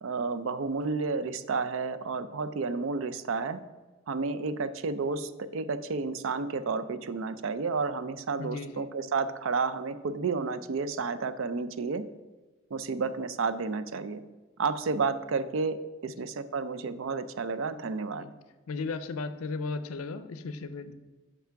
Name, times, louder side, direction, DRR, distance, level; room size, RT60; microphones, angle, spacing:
voice 1, 0.0-3.6 4.1-12.1 12.7-14.2 14.6-18.3, right 4 dB, 70° right, 13 dB, 0.4 m, -31 dB
voice 2, 8.4-8.9 18.1-18.3 18.7-20.9, left 4 dB, 90° left, 11 dB, 0.5 m, -35 dB
5.8 x 5.5 x 5.6 m, 1.2 s
head